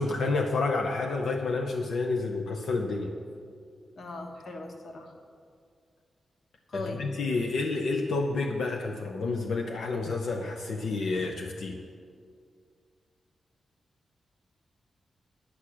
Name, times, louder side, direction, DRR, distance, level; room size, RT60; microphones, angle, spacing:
voice 1, 0.0-3.1 6.7-11.8, left 3 dB, 75° left, 2 dB, 0.7 m, -29 dB
voice 2, 4.0-5.1 6.7-7.0, left 2 dB, 50° left, 3 dB, 1.2 m, -38 dB
10.0 x 6.1 x 8.5 m, 2.2 s
wide cardioid pair, 175°, 0 cm